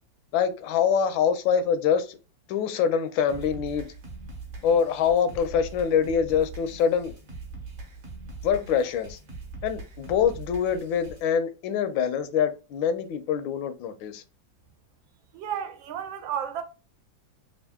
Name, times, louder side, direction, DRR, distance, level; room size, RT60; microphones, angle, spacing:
voice 1, 0.3-2.2 2.5-3.9 4.6-7.2 8.4-9.2 9.6-14.2, left 7 dB, 80° left, 1.3 m, -25 dB
sound 1, 3.3-11.3, right 3 dB, 45° right, 1.1 m, -42 dB
voice 2, 15.3-16.6, right 9 dB, 90° right, 1.4 m, -32 dB
3.5 x 2.4 x 3.5 m
omnidirectional pair, 2.1 m